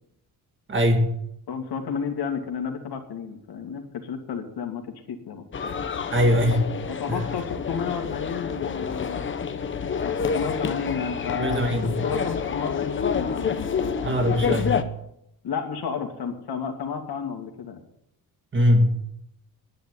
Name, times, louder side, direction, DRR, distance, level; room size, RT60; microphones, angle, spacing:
voice 1, 0.7-1.1 6.1-6.7 7.1-7.2 11.4-11.9 14.0-14.8 18.5-19.0, equal, 30° right, 4 dB, 2.2 m, -21 dB
voice 2, 1.5-5.4 6.9-9.3 10.0-14.6 15.4-17.8, left 6 dB, 80° left, 4 dB, 2.4 m, -32 dB
sound 1, 5.5-14.8, left 6 dB, 30° left, 0.9 m, -28 dB
10.0 x 9.9 x 9.8 m, 0.79 s
wide cardioid pair, 170°, 37 cm